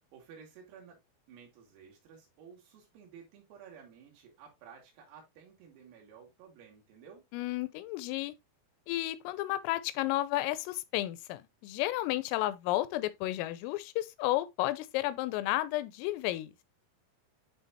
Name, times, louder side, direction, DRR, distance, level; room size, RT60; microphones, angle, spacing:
voice 1, 0.1-1.0 1.3-7.2, right 7 dB, 85° right, 4.9 m, -54 dB
voice 2, 7.3-8.3 8.9-16.5, left 16 dB, 85° left, 3.2 m, -32 dB
10.5 x 3.5 x 2.7 m
omnidirectional pair, 5.9 m